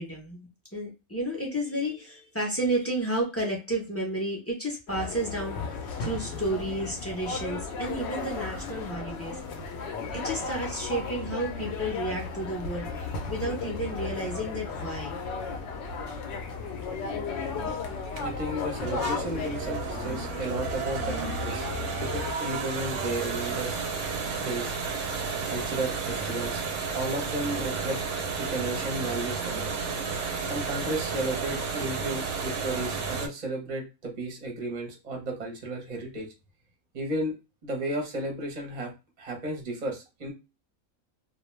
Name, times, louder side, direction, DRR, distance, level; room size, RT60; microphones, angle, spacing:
voice 1, 0.0-9.4 10.1-12.9 13.3-15.2, right 1 dB, 25° left, -2 dB, 0.3 m, -32 dB
sound 1, 4.9-22.3, left 4 dB, 65° left, 0.7 m, -35 dB
sound 2, 16.7-33.3, right 5 dB, 70° right, 0.8 m, -32 dB
voice 2, 18.1-21.7 21.9-23.8 24.4-24.8 25.5-26.6 26.9-28.0 28.4-29.8 30.4-36.3 36.9-37.3 37.6-38.9 39.2-40.3, right 1 dB, 35° right, 1 dB, 0.7 m, -33 dB
2.2 x 2.2 x 3.1 m, 0.27 s
omnidirectional pair, 1.5 m